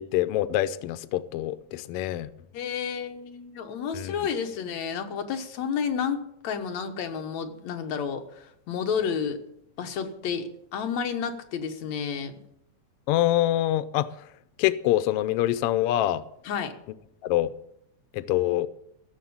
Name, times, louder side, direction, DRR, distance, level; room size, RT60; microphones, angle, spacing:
voice 1, 0.0-2.3 3.9-4.1 13.1-14.1 14.6-16.2 17.2-17.5 18.1-18.7, left 14 dB, 90° left, 1.3 m, -25 dB
voice 2, 2.5-9.4 9.8-12.3 16.4-16.7, left 7 dB, 70° left, 2.5 m, -31 dB
15.0 x 6.9 x 8.6 m
omnidirectional pair, 3.4 m